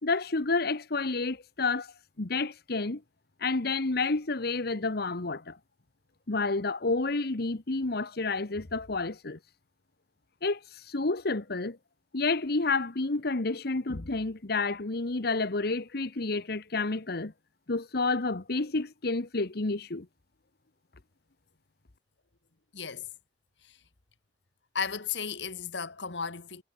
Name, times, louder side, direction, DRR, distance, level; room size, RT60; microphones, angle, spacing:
voice 1, 0.0-3.0 3.4-5.6 6.3-9.4 10.4-10.6 10.9-11.8 12.1-17.3 17.7-20.1, left 3 dB, 60° left, 1.2 m, -30 dB
voice 2, 22.7-23.1 23.6-23.8 24.7-26.6, left 6 dB, 75° left, 1.8 m, -34 dB
head